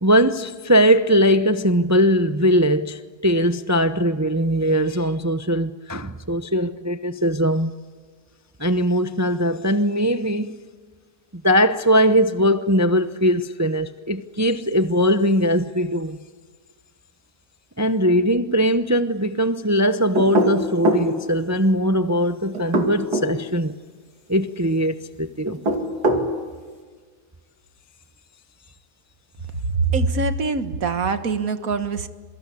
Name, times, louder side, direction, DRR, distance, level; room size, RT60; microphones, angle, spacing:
voice 1, 0.0-7.7 8.6-10.5 11.4-16.2 17.8-23.7 24.3-25.6 26.1-26.2, equal, 15° right, 0.6 m, -20 dB
sound 1, 20.1-21.1 22.5-23.3 25.5-26.3, right 1 dB, 80° right, 3.3 m, -21 dB
voice 2, 29.5-32.1, right 4 dB, 60° right, 1.8 m, -23 dB
27.0 x 24.0 x 8.4 m
omnidirectional pair, 1.7 m